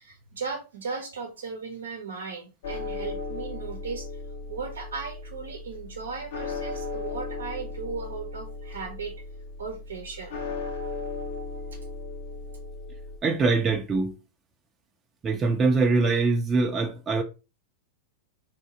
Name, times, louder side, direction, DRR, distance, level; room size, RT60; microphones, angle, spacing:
voice 1, 0.0-4.1 4.5-9.1 9.6-10.4, right 5 dB, 80° right, 0.7 m, -36 dB
sound 1, 2.6-13.2, left 3 dB, 70° left, 0.6 m, -36 dB
voice 2, 13.2-14.2 15.2-17.2, right 3 dB, 25° right, 0.5 m, -23 dB
3.8 x 2.7 x 2.8 m
hypercardioid pair, 100°, 0 cm